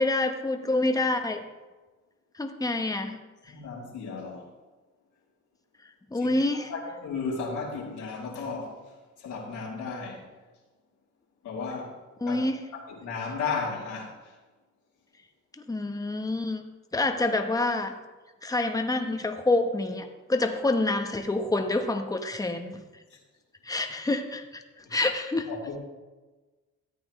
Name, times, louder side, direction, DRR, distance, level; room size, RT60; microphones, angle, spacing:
voice 1, 0.0-1.4 2.4-3.2 6.1-6.7 12.2-12.6 15.7-16.6 16.9-17.9 18.4-22.8 23.6-24.6 24.9-25.5, left 2 dB, 10° left, 5 dB, 1.0 m, -27 dB
voice 2, 3.5-4.5 6.1-8.8 9.2-10.2 11.4-11.9 12.2-12.4 12.7-14.3 24.8-24.9 25.5-25.8, left 4 dB, 75° left, -4 dB, 2.8 m, -34 dB
13.5 x 8.6 x 3.1 m, 1.2 s
cardioid pair, 90°, 30 cm